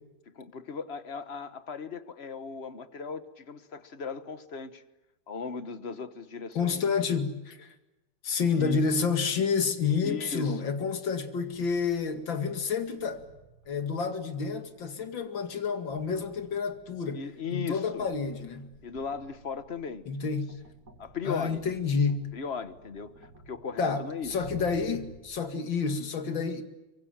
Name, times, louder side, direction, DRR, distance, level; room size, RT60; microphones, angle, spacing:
voice 1, 0.3-4.8 5.3-6.8 8.5-8.8 10.0-10.7 17.1-18.1 18.8-20.1 21.0-21.6 22.3-24.3, left 5 dB, 35° left, 1.4 m, -37 dB
voice 2, 6.5-7.7 8.2-13.2 13.7-17.2 17.5-18.7 20.1-20.5 21.2-22.3 23.8-26.6, left 5 dB, 85° left, 2.9 m, -29 dB
sound 1, 11.1-25.2, right 4 dB, 60° right, 3.7 m, -53 dB
25.0 x 24.0 x 9.0 m
omnidirectional pair, 2.0 m